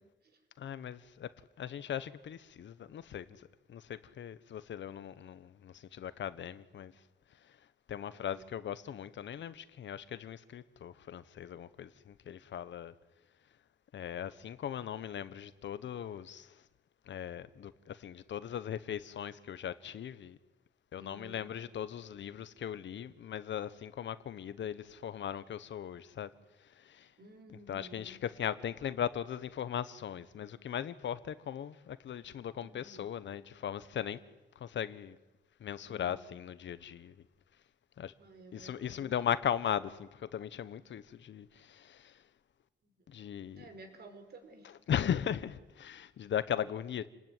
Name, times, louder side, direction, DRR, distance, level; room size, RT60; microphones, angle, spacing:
voice 1, 0.6-1.3 1.6-6.9 7.4-7.6 7.9-12.9 13.9-16.6 17.0-20.4 20.9-26.3 26.6-27.1 27.5-34.2 34.5-35.2 35.6-37.2 38.0-38.1 38.5-42.2 43.1-43.7 44.6-47.1, left 9 dB, 80° left, 1.3 m, -38 dB
voice 2, 8.1-8.5 21.0-21.9 27.2-28.2 32.6-33.1 35.9-36.4 38.2-39.1 42.8-43.0 43.5-44.8, right 1 dB, 60° right, 5.2 m, -54 dB
29.5 x 20.0 x 9.6 m
wide cardioid pair, 135°, 19 cm